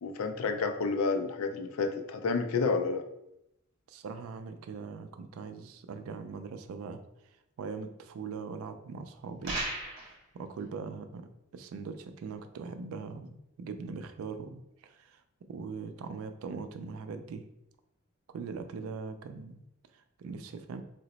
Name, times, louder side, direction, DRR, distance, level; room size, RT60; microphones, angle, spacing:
voice 1, 0.0-3.0, left 4 dB, 85° left, 7 dB, 0.4 m, -30 dB
voice 2, 3.9-7.0 7.6-9.6 10.0-15.2 15.5-17.5 18.3-19.6 19.9-20.8, right 5 dB, 85° right, 8 dB, 0.3 m, -41 dB
sound 1, 9.4-10.2, right 2 dB, 60° right, 0.8 m, -34 dB
2.8 x 2.0 x 3.9 m, 0.83 s
head